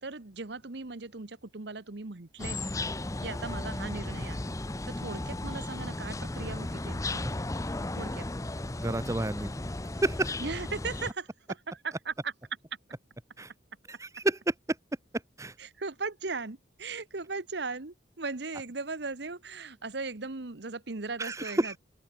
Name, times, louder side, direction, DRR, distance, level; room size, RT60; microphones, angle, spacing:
voice 1, 0.0-2.7 3.2-4.6 4.8-7.2 8.0-8.2 10.4-12.3 15.6-21.8, right 3 dB, 60° right, 1.1 m, -38 dB
sound 1, 2.4-11.1, left 2 dB, 15° left, 0.7 m, -35 dB
voice 2, 8.8-9.5 10.0-10.3 13.4-13.5 13.9-14.5 15.4-15.5 21.2-21.8, right 1 dB, 15° right, 0.8 m, -29 dB
open air
head